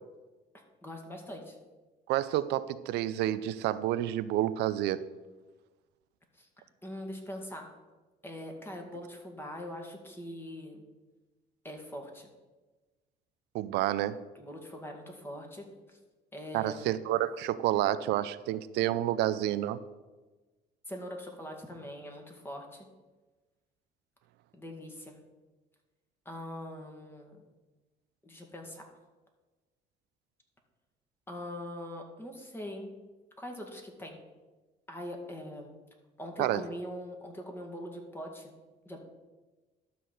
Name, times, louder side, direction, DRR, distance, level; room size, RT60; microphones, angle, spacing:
voice 1, 0.8-1.6 6.3-6.5 6.8-7.7 8.2-10.8 11.6-12.3 14.4-16.0 16.3-17.0 20.9-22.9 24.5-25.1 26.3-27.4 28.2-28.8 31.3-32.9 33.4-34.2 34.9-35.7 36.2-38.5 38.9-39.0, left 1 dB, 15° left, 2 dB, 2.0 m, -42 dB
voice 2, 2.1-5.0 13.5-14.2 16.5-19.8 36.4-36.6, right 13 dB, 85° right, 14 dB, 0.5 m, -29 dB
12.0 x 4.2 x 7.7 m, 1.2 s
cardioid pair, 110°, 17 cm